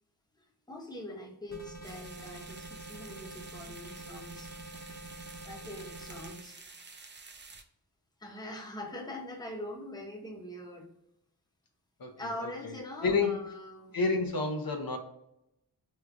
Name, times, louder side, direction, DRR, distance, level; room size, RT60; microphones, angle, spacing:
voice 1, 0.4-5.1 5.4-6.6 8.2-10.9 12.2-14.0, left 1 dB, 10° left, 0 dB, 0.7 m, -43 dB
sound 1, 1.5-6.4, right 2 dB, 40° left, 1.0 m, -46 dB
sound 2, 1.8-7.6, right 4 dB, 30° right, 0.4 m, -50 dB
voice 2, 13.0-13.4 13.9-15.0, left 4 dB, 60° left, 3 dB, 0.6 m, -28 dB
4.5 x 2.3 x 2.5 m, 0.81 s
wide cardioid pair, 65°, 41 cm